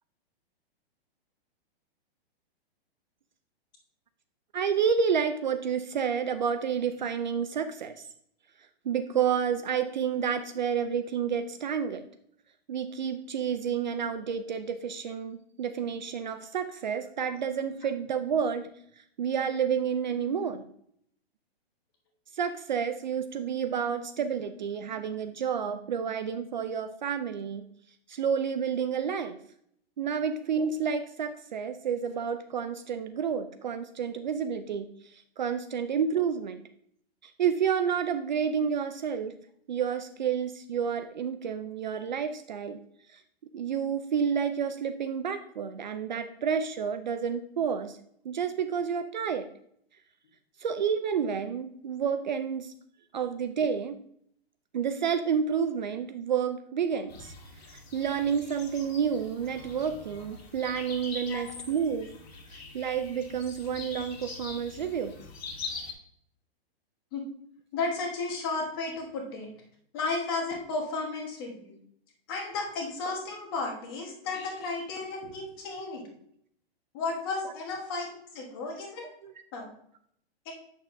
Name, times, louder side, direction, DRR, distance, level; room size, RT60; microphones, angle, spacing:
voice 1, 4.5-8.1 8.9-12.1 12.7-18.7 19.2-20.7 22.3-27.7 28.1-29.4 30.0-36.6 37.2-39.4 39.7-42.8 43.1-43.2 43.5-48.0 48.2-49.5 50.6-52.7 53.1-54.0 54.7-57.3 57.7-62.1 62.5-65.1 79.2-79.3, right 7 dB, 50° right, 9 dB, 0.4 m, -30 dB
amb - outdoor rooster birds, 57.1-65.9, left 4 dB, 80° left, 2.3 m, -43 dB
voice 2, 67.7-69.5 69.9-71.7 72.3-76.1 76.9-79.1 79.5-79.7 80.4-80.5, left 3 dB, 25° left, 1 dB, 1.2 m, -33 dB
7.9 x 6.6 x 2.6 m, 0.67 s
hypercardioid pair, 180°, 31 cm